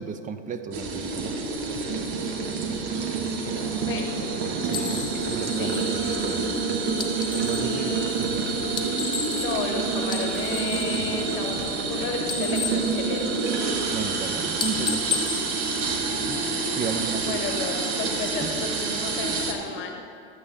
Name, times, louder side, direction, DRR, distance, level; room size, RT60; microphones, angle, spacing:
voice 1, 0.0-1.5 4.6-6.8 7.4-8.3 13.9-15.4 15.8-17.4 18.4-18.5, right 5 dB, 25° right, 10 dB, 0.5 m, -34 dB
sound 1, 0.7-19.5, right 4 dB, 60° right, 1.4 m, -27 dB
voice 2, 3.6-4.2 5.6-6.0 7.1-8.4 9.4-13.4 17.2-20.0, left 5 dB, 35° left, 3 dB, 1.4 m, -33 dB
sound 2, 3.6-18.2, equal, 5° right, 2.1 m, -43 dB
sound 3, 4.7-7.7 8.6-9.7 10.0-11.9 12.2-13.7 14.1-14.3 14.6-16.4, left 6 dB, 15° left, 0.9 m, -34 dB
12.5 x 8.6 x 3.7 m, 2.4 s
hypercardioid pair, 105°, 34 cm